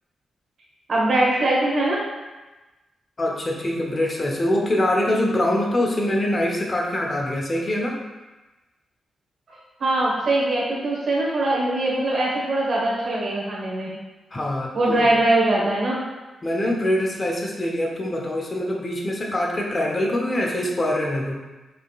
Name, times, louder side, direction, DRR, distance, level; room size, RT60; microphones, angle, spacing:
voice 1, 0.9-2.0 9.5-13.9 14.7-16.0, right 2 dB, 65° right, -4 dB, 1.2 m, -22 dB
voice 2, 3.2-7.9 14.3-15.1 16.4-21.4, left 1 dB, 40° left, -1 dB, 0.8 m, -24 dB
5.0 x 2.8 x 2.3 m, 1.1 s
supercardioid pair, 45°, 0 cm